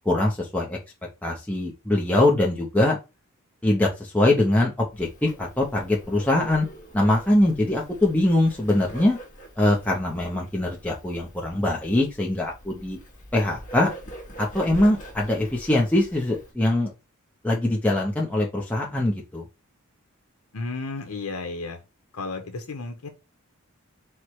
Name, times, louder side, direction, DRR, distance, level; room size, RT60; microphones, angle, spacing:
voice 1, 0.1-0.8 1.2-3.0 3.6-6.7 6.9-9.2 9.6-13.0 13.3-13.9 14.4-16.9 17.4-19.4, left 1 dB, 5° left, 0.5 m, -22 dB
Bird, 4.9-16.5, right 1 dB, 35° left, 1.1 m, -44 dB
voice 2, 20.5-21.8 22.1-23.1, left 3 dB, 75° left, 0.7 m, -33 dB
4.5 x 2.1 x 4.4 m
head